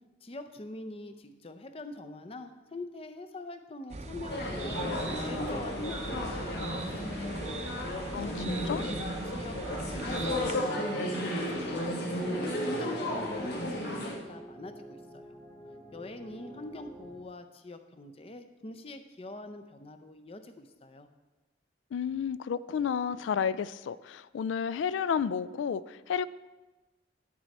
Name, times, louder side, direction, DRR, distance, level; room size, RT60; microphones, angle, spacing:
voice 1, 0.2-4.8 5.2-7.4 7.8-12.3 12.6-15.3 15.9-21.1, left 2 dB, 30° left, 8 dB, 0.5 m, -43 dB
sound 1, 3.9-10.5, right 2 dB, 35° right, 0.6 m, -40 dB
sound 2, 4.3-14.1, equal, 60° left, 1.5 m, -33 dB
voice 2, 8.1-8.9 21.9-26.3, left 7 dB, 85° left, 16 dB, 0.3 m, -31 dB
sound 3, 10.2-17.2, equal, 10° left, 1.0 m, -49 dB
10.0 x 6.2 x 4.2 m, 1.2 s
head